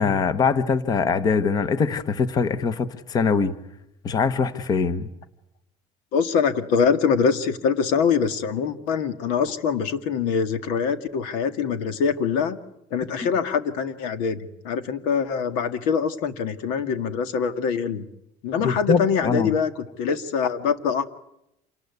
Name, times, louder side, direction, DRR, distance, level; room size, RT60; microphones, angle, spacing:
voice 1, 0.0-3.5 4.0-5.1 18.6-19.5, left 5 dB, 25° left, 13 dB, 1.1 m, -22 dB
voice 2, 6.1-12.6 12.9-18.1 18.4-21.0, left 6 dB, 85° left, 10 dB, 1.9 m, -24 dB
27.5 x 19.5 x 9.5 m, 0.82 s
cardioid pair, 170°, 14 cm